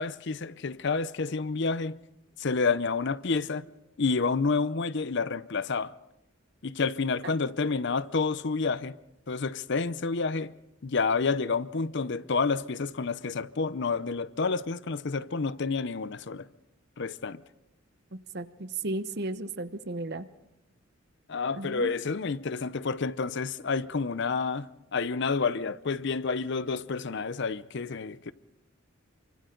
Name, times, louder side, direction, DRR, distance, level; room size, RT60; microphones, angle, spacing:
voice 1, 0.0-2.0 2.4-3.7 4.0-5.9 6.6-8.9 9.3-10.5 10.8-16.5 17.0-17.4 21.3-28.3, left 4 dB, 55° left, 0.6 m, -29 dB
voice 2, 18.1-20.2 21.5-21.9, right 2 dB, 50° right, 1.0 m, -35 dB
28.0 x 25.0 x 3.9 m
head